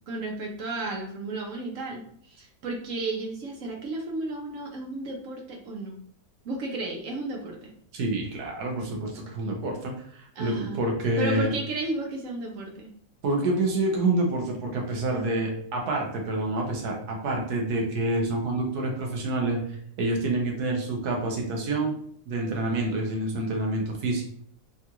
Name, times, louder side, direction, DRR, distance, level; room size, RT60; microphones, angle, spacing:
voice 1, 0.1-6.0 6.4-7.7 10.4-10.8 11.2-12.9 15.1-15.3, right 2 dB, 65° right, 1 dB, 0.9 m, -33 dB
voice 2, 7.9-11.5 13.2-21.9 22.3-24.2, right 2 dB, 80° right, 1 dB, 1.4 m, -27 dB
3.6 x 2.4 x 2.9 m, 0.65 s
omnidirectional pair, 1.6 m